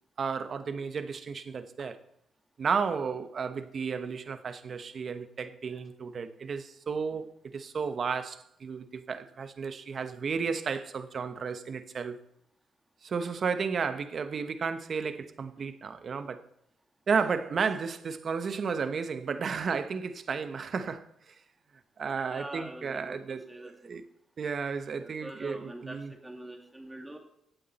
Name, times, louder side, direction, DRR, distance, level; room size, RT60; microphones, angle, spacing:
voice 1, 0.2-2.0 2.6-12.2 13.0-16.4 17.1-21.3 22.0-24.0 24.4-26.1, right 5 dB, 50° right, 1.0 m, -33 dB
voice 2, 22.2-24.0 24.9-27.2, right 1 dB, 10° right, 2.6 m, -44 dB
16.0 x 8.5 x 4.2 m
cardioid pair, 90°, 0 cm